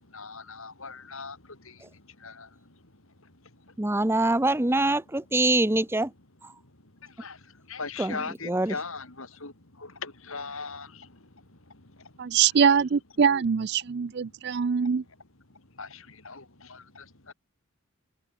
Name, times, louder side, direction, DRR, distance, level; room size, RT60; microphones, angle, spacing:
voice 1, 0.1-1.4 2.2-2.5 7.2-7.4 7.7-9.5 9.8-10.9 15.8-16.4 16.7-17.0, left 4 dB, 65° left, 3.5 m, -38 dB
voice 2, 3.8-6.1 8.0-8.8, right 2 dB, 10° right, 0.7 m, -24 dB
voice 3, 12.2-15.0, right 7 dB, 50° right, 0.4 m, -23 dB
head